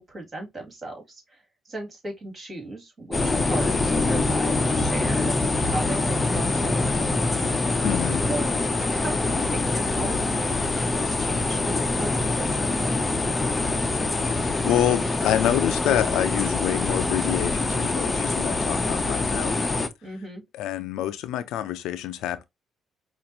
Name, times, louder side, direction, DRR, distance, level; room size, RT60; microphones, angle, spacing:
voice 1, 0.0-1.4 1.7-7.0 7.9-8.0 8.3-8.6 8.9-13.1 20.0-20.4, right 2 dB, 35° right, 2.5 m, -36 dB
sound 1, 3.1-19.9, left 3 dB, 20° left, 0.6 m, -24 dB
voice 2, 7.8-8.2 14.2-19.6 20.5-22.4, left 12 dB, 90° left, 0.4 m, -27 dB
5.1 x 2.5 x 2.9 m
cardioid pair, 90°, 0 cm